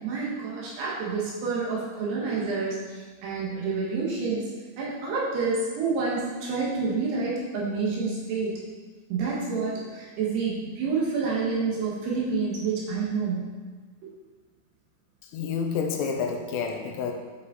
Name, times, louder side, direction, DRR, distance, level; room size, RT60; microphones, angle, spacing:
voice 1, 0.0-2.8 3.2-4.5 4.8-8.6 9.1-13.4, right 4 dB, 75° right, -5 dB, 3.5 m, -28 dB
voice 2, 15.3-17.1, left 6 dB, 85° left, 3 dB, 3.0 m, -29 dB
10.0 x 5.1 x 4.1 m, 1.4 s
omnidirectional pair, 5.1 m